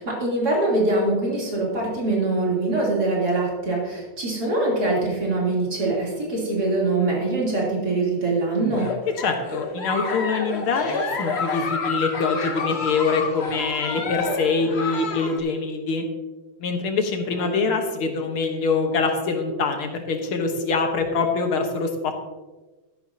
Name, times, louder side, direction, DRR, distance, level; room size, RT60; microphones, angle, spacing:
voice 1, 0.0-8.9 17.4-17.6, right 2 dB, 45° right, -4 dB, 3.8 m, -23 dB
Giggle, 8.7-15.4, left 4 dB, 40° left, 1.1 m, -29 dB
voice 2, 9.2-16.0 16.6-22.2, left 4 dB, 90° left, 4 dB, 2.2 m, -24 dB
12.5 x 11.0 x 2.8 m, 1.2 s
omnidirectional pair, 2.3 m